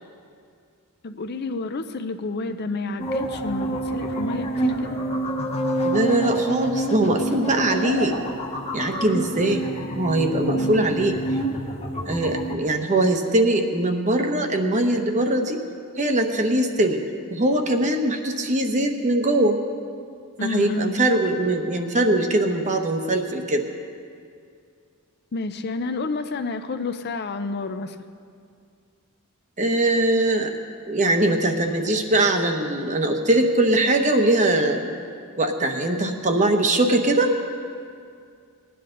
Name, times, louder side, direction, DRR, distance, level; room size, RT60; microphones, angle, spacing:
voice 1, 1.0-5.0 10.5-11.0 20.4-20.9 25.3-28.0, left 3 dB, 50° left, 9 dB, 0.5 m, -30 dB
sound 1, 3.0-12.6, right 2 dB, 30° left, 1.1 m, -27 dB
voice 2, 5.8-8.2 8.7-9.6 10.0-11.1 12.1-15.6 16.0-17.0 17.3-19.6 20.4-23.6 29.6-30.6 30.9-34.9 35.4-37.3, right 1 dB, 35° right, 4 dB, 1.0 m, -21 dB
19.5 x 10.0 x 3.9 m, 2.3 s
head